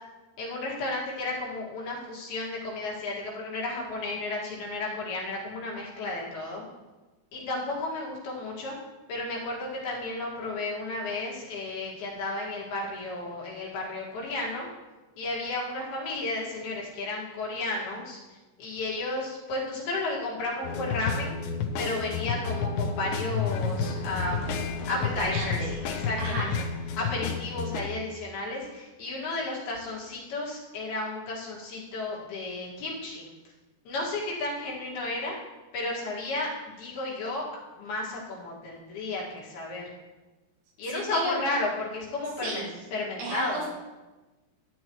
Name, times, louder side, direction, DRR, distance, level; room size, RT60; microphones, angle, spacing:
voice 1, 0.4-6.7 7.3-8.8 9.1-14.7 15.2-21.4 21.8-24.4 24.9-26.7 27.0-33.3 33.9-35.4 35.7-37.5 37.8-39.9 40.8-43.6, left 2 dB, 65° left, -4 dB, 3.7 m, -33 dB
sound 1, 20.6-27.8, left 5 dB, 80° left, 3.1 m, -31 dB
voice 2, 25.0-25.8 26.2-26.6 40.9-41.4 42.4-42.7 43.2-43.7, right 2 dB, 70° right, -4 dB, 4.1 m, -34 dB
13.0 x 10.0 x 3.1 m, 1.2 s
omnidirectional pair, 4.9 m